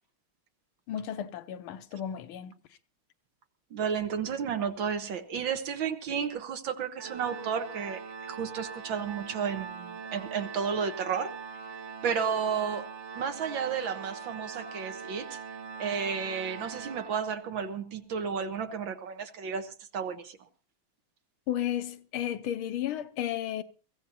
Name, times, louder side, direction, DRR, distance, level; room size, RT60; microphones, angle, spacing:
voice 1, 0.9-2.5 21.5-23.6, left 11 dB, 75° left, 1.7 m, -33 dB
voice 2, 3.7-11.3 12.0-12.9 13.1-15.4 15.8-20.4, right 6 dB, 65° right, 1.9 m, -32 dB
Organ, 7.0-17.7, right 6 dB, 50° right, 0.8 m, -42 dB
23.0 x 15.5 x 2.8 m
omnidirectional pair, 2.3 m